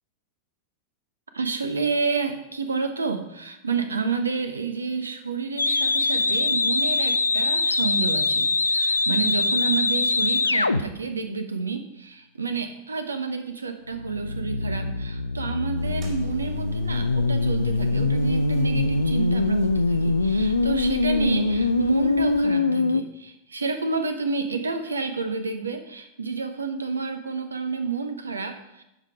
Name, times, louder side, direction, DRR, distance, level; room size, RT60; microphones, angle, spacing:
voice 1, 1.3-28.8, right 4 dB, 75° right, 8 dB, 0.9 m, -29 dB
sound 1, 5.6-10.8 13.9-23.0, left 3 dB, 80° left, 0.3 m, -23 dB
sound 2, 15.8-22.5, right 3 dB, 45° right, 3.0 m, -40 dB
11.5 x 5.0 x 4.9 m, 0.89 s
figure-of-eight pair, 90°, 0 cm